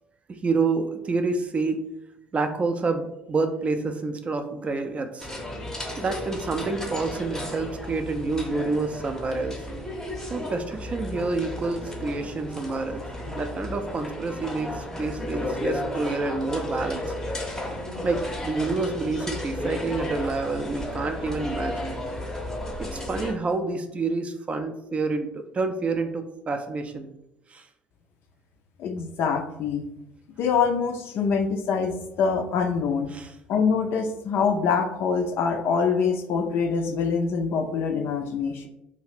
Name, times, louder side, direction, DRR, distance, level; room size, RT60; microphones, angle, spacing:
voice 1, 0.3-1.8 2.3-5.3 6.0-9.6 10.3-17.1 18.0-22.0 22.8-27.1 27.5-27.7 33.1-33.3, right 3 dB, 25° right, 7 dB, 0.4 m, -28 dB
sound 1, 5.2-23.3, left 1 dB, 10° left, 0.6 m, -33 dB
voice 2, 28.8-29.8 30.4-33.1 33.5-38.7, left 5 dB, 50° left, 4 dB, 0.3 m, -25 dB
2.7 x 2.4 x 3.0 m, 0.85 s
figure-of-eight pair, 60°, 5 cm